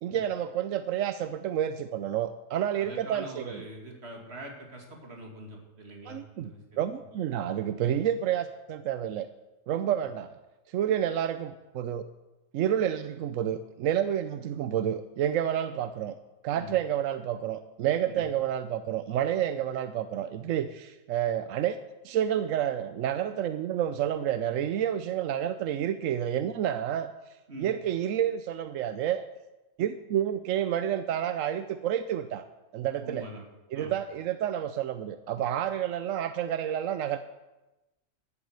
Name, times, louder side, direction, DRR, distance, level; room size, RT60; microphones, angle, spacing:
voice 1, 0.0-3.6 6.1-6.5 6.8-9.3 9.7-10.3 10.7-12.1 12.5-16.2 16.4-21.8 22.0-27.1 27.6-29.2 29.8-32.4 32.7-33.3 33.7-37.2, right 10 dB, 90° right, 11 dB, 1.0 m, -29 dB
voice 2, 2.8-6.6 16.5-16.7 18.1-18.3 27.5-27.7 33.0-33.4 33.7-34.0, right 1 dB, 55° right, 1 dB, 2.6 m, -43 dB
12.0 x 8.5 x 8.0 m, 1.0 s
omnidirectional pair, 1.3 m